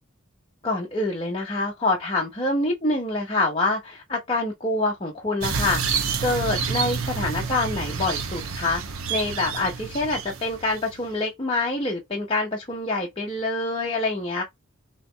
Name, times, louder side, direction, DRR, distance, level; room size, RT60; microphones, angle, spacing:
voice 1, 0.6-5.8 6.2-8.8 9.1-14.4, left 2 dB, 25° left, 0.8 m, -26 dB
sound 1, 5.4-11.2, right 5 dB, 85° right, 0.8 m, -29 dB
4.1 x 3.0 x 3.8 m
head